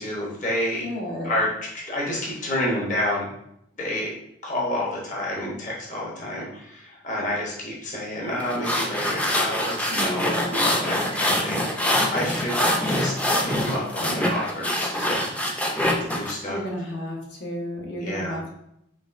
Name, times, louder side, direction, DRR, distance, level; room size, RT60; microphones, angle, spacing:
voice 1, 0.0-0.9 1.2-1.5 1.9-3.3 3.8-4.1 4.4-12.6 12.9-15.3 16.0-16.6 18.0-18.4, left 1 dB, 45° left, -3 dB, 0.9 m, -29 dB
voice 2, 0.8-1.3 9.9-10.6 16.5-18.6, equal, 70° left, -2 dB, 1.0 m, -32 dB
sound 1, 8.4-16.3, left 1 dB, 10° left, 0.4 m, -24 dB
5.0 x 3.3 x 2.5 m, 0.77 s
head